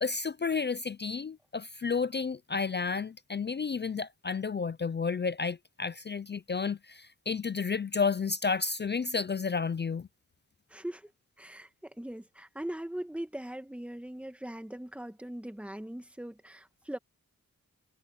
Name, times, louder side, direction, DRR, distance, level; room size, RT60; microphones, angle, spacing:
voice 1, 0.0-10.1, left 5 dB, 30° left, 0.4 m, -31 dB
voice 2, 10.7-11.1 11.4-17.0, right 1 dB, 5° right, 1.4 m, -40 dB
wide cardioid pair, 110°, 34 cm